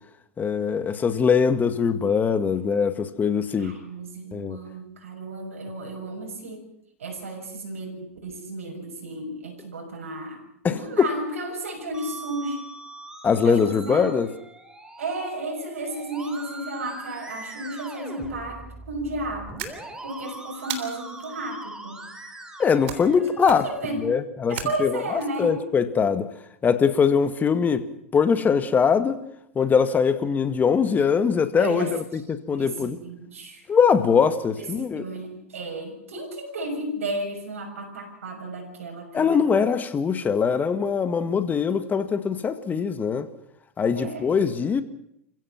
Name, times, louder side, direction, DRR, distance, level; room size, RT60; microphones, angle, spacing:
voice 1, 0.4-3.8 4.3-4.6 10.6-11.1 13.2-14.3 22.6-23.7 23.9-26.3 26.6-27.9 28.1-29.2 29.6-33.0 33.7-35.0 39.1-43.3 43.8-44.8, left 6 dB, 25° left, 1.9 m, -22 dB
voice 2, 3.6-6.6 7.0-10.4 10.7-12.6 13.4-14.2 15.0-19.7 20.0-22.1 23.6-24.2 24.5-25.6 31.6-31.9 32.5-33.6 34.6-39.4 43.9-44.5, right 2 dB, 80° right, 6.7 m, -33 dB
Musical instrument, 11.9-23.9, right 2 dB, 10° right, 3.8 m, -41 dB
sound 1, 19.6-20.2 20.7-21.3 22.9-23.2 23.4-23.9 24.6-25.2, right 10 dB, 60° right, 3.4 m, -36 dB
28.5 x 16.0 x 6.1 m
hypercardioid pair, 100°, 7 cm